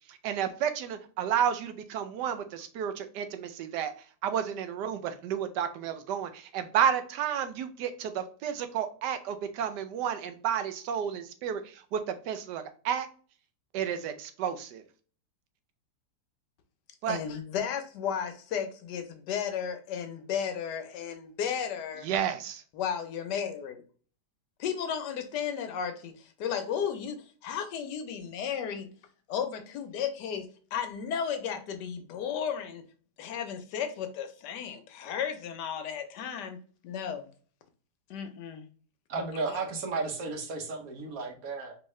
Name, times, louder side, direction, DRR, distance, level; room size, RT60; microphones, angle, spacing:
voice 1, 0.1-3.9 4.2-12.0 12.3-13.1 13.7-14.8 17.0-17.2 22.0-22.6, right 8 dB, 85° right, 9 dB, 1.2 m, -31 dB
voice 2, 17.1-22.1 22.7-23.8 24.6-28.9 29.3-32.8 33.2-36.6 36.8-37.3 38.1-38.7, left 8 dB, 80° left, 8 dB, 1.3 m, -34 dB
voice 3, 39.1-41.8, right 3 dB, 60° right, 4 dB, 1.3 m, -34 dB
4.5 x 2.8 x 3.1 m, 0.42 s
omnidirectional pair, 1.8 m